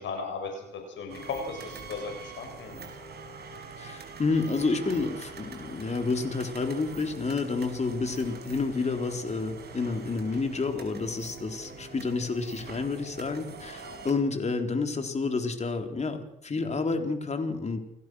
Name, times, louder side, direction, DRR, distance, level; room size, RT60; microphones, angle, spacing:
voice 1, 0.0-2.9, left 4 dB, 70° left, 3 dB, 6.6 m, -36 dB
sound 1, 1.1-14.1, right 4 dB, 55° right, 5.8 m, -44 dB
voice 2, 3.8-17.8, left 3 dB, 35° left, 5 dB, 3.9 m, -29 dB
29.5 x 16.5 x 6.4 m, 0.76 s
cardioid pair, 90°, 20 cm